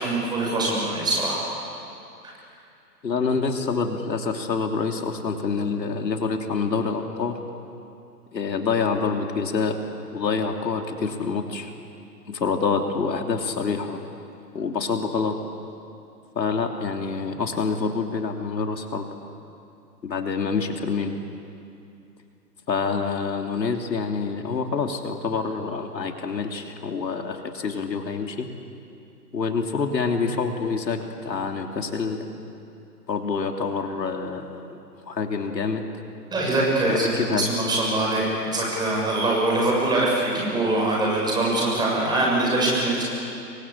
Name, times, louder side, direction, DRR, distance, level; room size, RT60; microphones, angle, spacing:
voice 1, 0.0-1.4 36.3-37.1 37.4-43.0, right 2 dB, 10° right, -3 dB, 6.5 m, -23 dB
voice 2, 3.0-7.4 8.3-9.8 10.1-11.7 12.3-14.0 14.5-15.4 16.3-19.1 20.0-21.2 22.7-28.5 29.3-32.3 33.1-34.8 35.1-35.9 36.9-37.5, left 5 dB, 85° left, 3 dB, 3.2 m, -26 dB
28.5 x 23.5 x 8.5 m, 2.6 s
hypercardioid pair, 155°, 50 cm